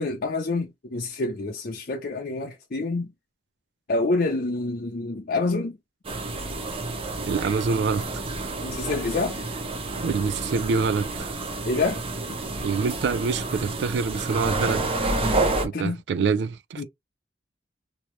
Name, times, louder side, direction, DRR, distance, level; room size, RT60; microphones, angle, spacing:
voice 1, 0.0-3.1 3.9-5.8 8.6-9.4 11.6-12.4 15.7-16.0 16.8-16.9, left 3 dB, 55° left, 0.6 m, -27 dB
sound 1, 6.0-15.7, right 2 dB, 30° right, 0.7 m, -29 dB
voice 2, 7.3-8.0 9.9-11.3 12.6-14.9 15.6-16.8, right 5 dB, 70° right, 0.3 m, -26 dB
3.0 x 2.7 x 3.1 m
head